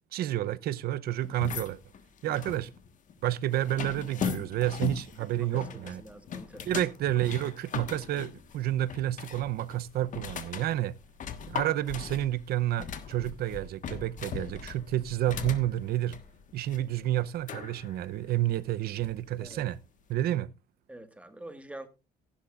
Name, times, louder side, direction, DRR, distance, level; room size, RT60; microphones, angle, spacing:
voice 1, 0.1-1.8 2.2-2.7 3.2-6.0 6.7-10.9 11.5-16.1 16.5-19.8 20.1-20.5, right 13 dB, 65° right, 0.7 m, -30 dB
sound 1, 1.2-19.8, left 7 dB, 50° left, 1.4 m, -40 dB
voice 2, 5.4-6.8 19.4-19.6 20.9-21.9, right 1 dB, 5° right, 1.6 m, -46 dB
15.5 x 11.5 x 2.5 m
cardioid pair, 110°, 17 cm